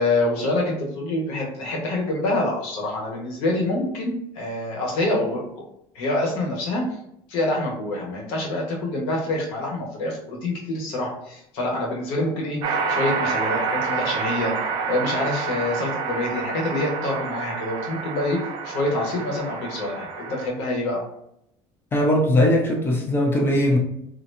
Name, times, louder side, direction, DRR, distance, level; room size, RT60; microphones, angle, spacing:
voice 1, 0.0-5.6 5.9-6.8 7.3-14.5 14.9-21.0, left 2 dB, 65° left, -2 dB, 1.1 m, -26 dB
sound 1, 12.6-20.5, right 5 dB, 40° right, 0.4 m, -28 dB
voice 2, 21.9-23.8, left 1 dB, 20° left, 0 dB, 0.4 m, -19 dB
3.2 x 2.7 x 2.7 m, 0.77 s
cardioid pair, 175°, 11 cm